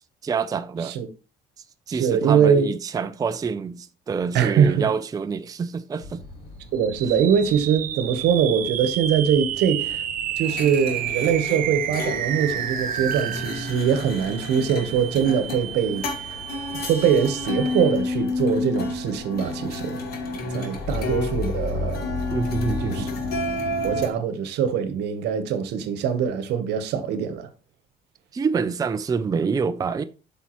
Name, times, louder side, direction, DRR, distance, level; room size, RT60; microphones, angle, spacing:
voice 1, 0.2-1.0 1.9-6.2 22.3-23.2 28.3-30.0, right 5 dB, 20° right, 0.4 m, -26 dB
voice 2, 1.9-2.7 4.3-4.9 6.7-10.0 10.4-16.4 16.7-20.0 20.5-22.1 22.8-23.1 23.8-27.5, right 7 dB, 80° right, 1.0 m, -23 dB
sound 1, 6.0-24.1, left 3 dB, 85° left, 2.1 m, -38 dB
sound 2, 6.7-18.3, right 10 dB, 55° right, 0.8 m, -31 dB
sound 3, 10.4-24.1, left 2 dB, 65° left, 1.8 m, -31 dB
8.2 x 5.6 x 3.0 m
cardioid pair, 110°, 17 cm